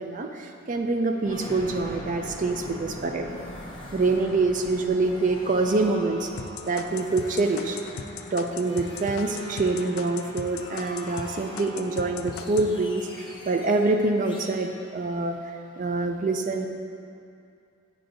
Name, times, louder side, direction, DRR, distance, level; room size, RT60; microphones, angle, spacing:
voice 1, 0.0-3.4 3.9-6.3 6.7-7.8 8.3-16.7, right 3 dB, 40° right, 5 dB, 0.4 m, -26 dB
sound 1, 1.2-15.9, left 1 dB, 20° left, 0.8 m, -42 dB
sound 2, 6.4-11.3 11.6-12.7, left 7 dB, 65° left, 0.3 m, -37 dB
10.0 x 4.5 x 2.6 m, 2.5 s
head